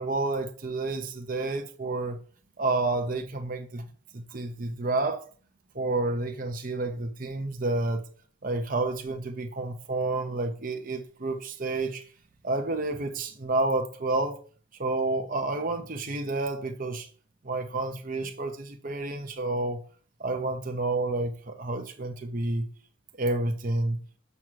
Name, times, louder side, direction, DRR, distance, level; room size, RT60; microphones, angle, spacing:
voice 1, 0.0-2.2 2.6-3.9 4.1-5.2 5.7-8.0 8.4-12.0 12.4-14.4 14.8-17.1 17.4-19.8 20.2-22.6 23.2-24.0, right 2 dB, 40° right, 0.8 m, -29 dB
7.5 x 5.6 x 4.7 m
head